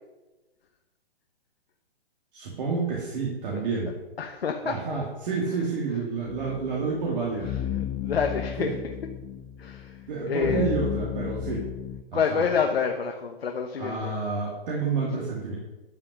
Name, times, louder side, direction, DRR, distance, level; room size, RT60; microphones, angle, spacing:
voice 1, 2.3-3.9 4.6-7.5 8.6-8.7 10.1-11.7 12.1-12.4 13.8-15.6, right 4 dB, 45° right, -4 dB, 2.6 m, -29 dB
voice 2, 4.2-4.8 7.7-8.7 9.6-10.0 10.3-10.7 12.1-14.1, left 6 dB, 75° left, 4 dB, 1.2 m, -27 dB
sound 1, 6.3-12.0, left 10 dB, 10° left, 0.4 m, -34 dB
12.0 x 5.8 x 6.5 m, 1.1 s
hypercardioid pair, 135°, 31 cm